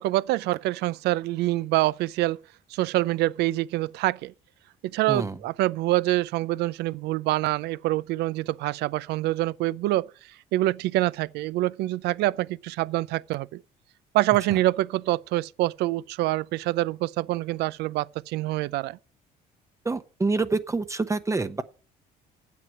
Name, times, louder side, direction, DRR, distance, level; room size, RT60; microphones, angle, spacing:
voice 1, 0.0-2.4 2.7-4.3 4.8-10.1 10.5-13.6 14.1-19.0, right 17 dB, 80° right, 0.5 m, -26 dB
voice 2, 5.1-5.4 14.5-14.6 19.8-21.6, right 3 dB, 20° right, 0.7 m, -27 dB
9.4 x 7.7 x 9.0 m
cardioid pair, 110°, 17 cm